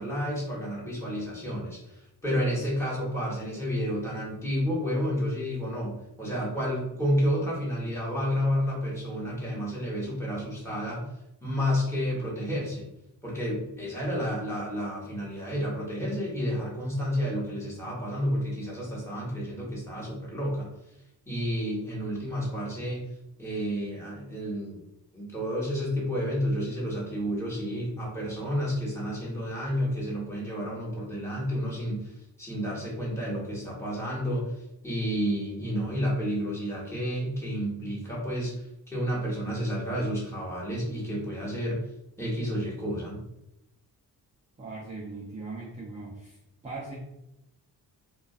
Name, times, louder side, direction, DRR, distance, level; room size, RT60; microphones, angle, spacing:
voice 1, 0.0-11.1 11.4-12.9 13.2-20.7 21.3-23.0 23.4-24.8 25.1-32.1 32.4-34.5 34.8-38.5 38.9-41.8 42.2-43.2, equal, 5° left, -6 dB, 1.1 m, -30 dB
voice 2, 44.6-46.9, right 3 dB, 15° right, -5 dB, 0.5 m, -40 dB
2.4 x 2.3 x 2.3 m, 0.88 s
cardioid pair, 85°, 40 cm